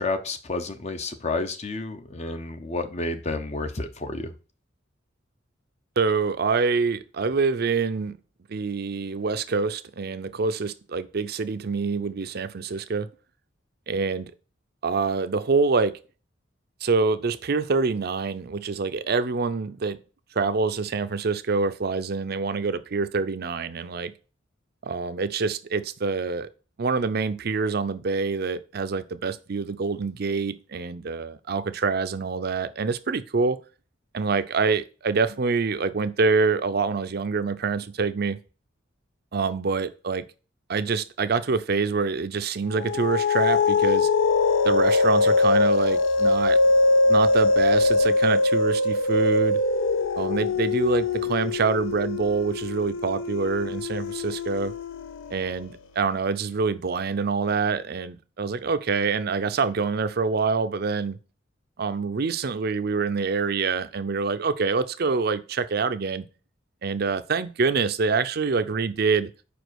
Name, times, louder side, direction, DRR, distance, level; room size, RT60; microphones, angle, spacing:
voice 1, 0.0-4.3, left 3 dB, 35° left, 0.6 m, -30 dB
voice 2, 6.0-8.2 8.5-13.1 13.9-14.3 14.8-16.0 16.8-20.0 20.4-24.1 24.8-26.5 26.8-33.6 34.1-38.4 39.3-40.3 40.7-44.1 44.6-46.6 47.1-49.6 50.2-54.7 55.3-61.2 61.8-66.2 66.8-69.3, right 4 dB, 55° right, 0.5 m, -26 dB
sound 1, 42.7-55.5, left 3 dB, 75° left, 0.5 m, -22 dB
5.1 x 5.0 x 6.2 m
head